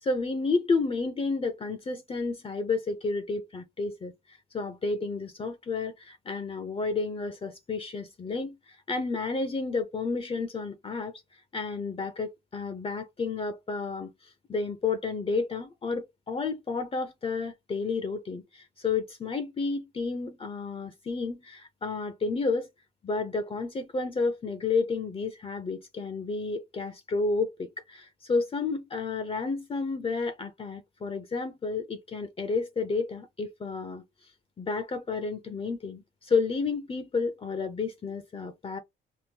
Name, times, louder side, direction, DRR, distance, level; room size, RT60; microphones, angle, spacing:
voice 1, 0.0-4.1 4.5-11.1 11.5-22.7 23.0-34.0 34.6-38.8, left 4 dB, 30° left, 0.5 m, -31 dB
3.7 x 2.2 x 2.7 m
cardioid pair, 90°, 20 cm